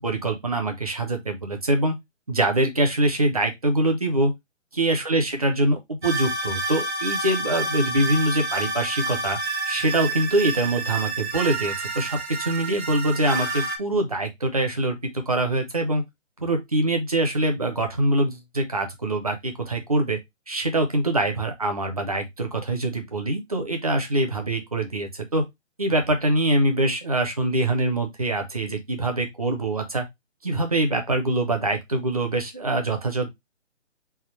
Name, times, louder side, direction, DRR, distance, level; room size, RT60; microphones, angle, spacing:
voice 1, 0.0-2.0 2.3-4.3 4.8-9.4 9.7-15.0 15.3-16.0 16.4-20.2 20.5-25.4 25.8-30.0 30.4-33.3, right 1 dB, 30° right, 0.7 m, -24 dB
sound 1, 6.0-13.8, right 2 dB, 55° right, 1.3 m, -29 dB
3.6 x 2.6 x 4.3 m
hypercardioid pair, 175°, 37 cm